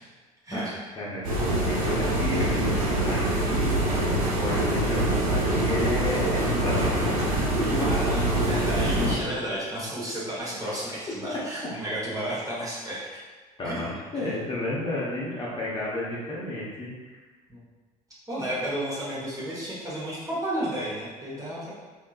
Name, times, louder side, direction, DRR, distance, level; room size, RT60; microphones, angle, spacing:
voice 1, 1.0-3.7 4.2-7.0 7.4-7.7 13.6-17.2, left 1 dB, 25° left, -7 dB, 0.9 m, -32 dB
sound 1, 1.2-9.1, right 1 dB, 70° right, 0.8 m, -24 dB
voice 2, 7.7-13.2 13.6-13.8 14.2-14.4 15.4-15.6 17.5-17.6 18.3-21.7, right 1 dB, 15° right, -7 dB, 1.3 m, -32 dB
3.4 x 2.9 x 2.4 m, 1.4 s
figure-of-eight pair, 60°, 19 cm